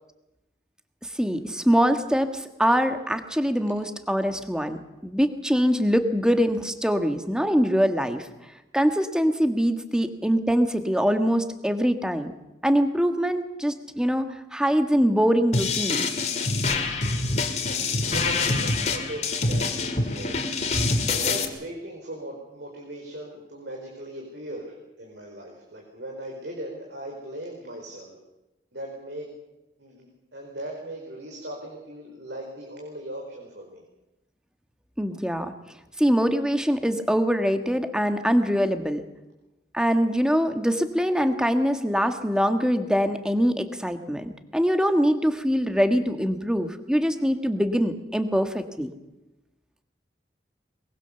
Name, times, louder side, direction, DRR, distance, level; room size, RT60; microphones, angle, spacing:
voice 1, 1.2-8.3 8.7-12.3 12.6-14.2 14.5-16.1 35.0-35.5 36.0-39.0 39.7-48.9, equal, 5° right, 7 dB, 1.5 m, -23 dB
sound 1, 15.5-21.4, left 3 dB, 40° left, 2.4 m, -25 dB
voice 2, 18.1-20.4 21.1-28.2 28.7-29.3 29.8-33.8, right 1 dB, 85° right, 0 dB, 4.7 m, -38 dB
22.5 x 22.5 x 7.0 m, 0.97 s
head